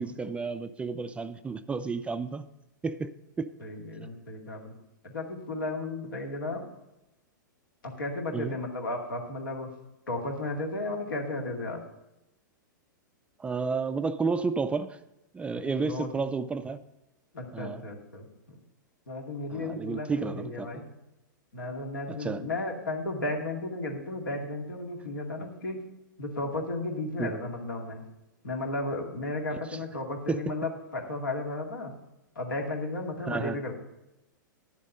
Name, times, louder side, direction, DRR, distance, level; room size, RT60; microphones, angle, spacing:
voice 1, 0.0-2.4 2.8-3.1 3.4-3.5 8.3-8.5 13.4-15.0 15.3-16.8 17.5-17.8 19.5-20.8 22.1-22.4 27.2-27.3 30.3-30.4 33.3-33.6, right 4 dB, 10° right, 0.4 m, -31 dB
voice 2, 3.6-4.7 5.0-6.7 7.8-9.7 10.1-11.8 15.8-16.1 17.3-18.6 19.1-20.9 21.5-25.9 26.2-28.0 28.4-31.9 32.4-33.7, left 2 dB, 80° left, 2.2 m, -34 dB
10.5 x 7.5 x 5.4 m
hypercardioid pair, 115°, 11 cm